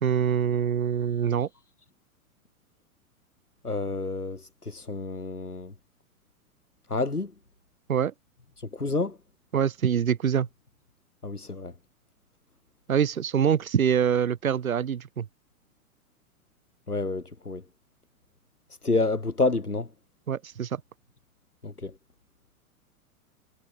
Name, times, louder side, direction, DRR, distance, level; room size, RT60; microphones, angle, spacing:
voice 1, 0.0-1.5 7.9-8.1 9.5-10.5 12.9-15.3 20.3-20.8, right 8 dB, 65° right, 4.0 m, -25 dB
voice 2, 3.6-5.7 6.9-7.3 8.6-9.2 11.2-11.7 16.9-17.6 18.8-19.9 21.6-21.9, left 3 dB, 85° left, 3.8 m, -29 dB
figure-of-eight pair, 105°, 44 cm